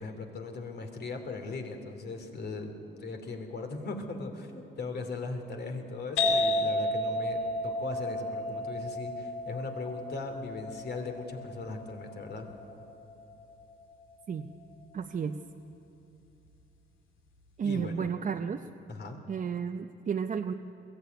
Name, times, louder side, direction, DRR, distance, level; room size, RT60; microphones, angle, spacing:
voice 1, 0.0-2.7 3.0-12.5 17.6-18.1 18.9-19.2, left 3 dB, 55° left, 5 dB, 2.9 m, -39 dB
sound 1, 6.2-13.6, left 1 dB, 80° left, 2.8 m, -32 dB
voice 2, 14.9-15.4 17.6-18.6 19.3-20.5, right 7 dB, 40° right, 5 dB, 0.7 m, -32 dB
22.0 x 15.5 x 9.3 m, 2.9 s
cardioid pair, 90°, 20 cm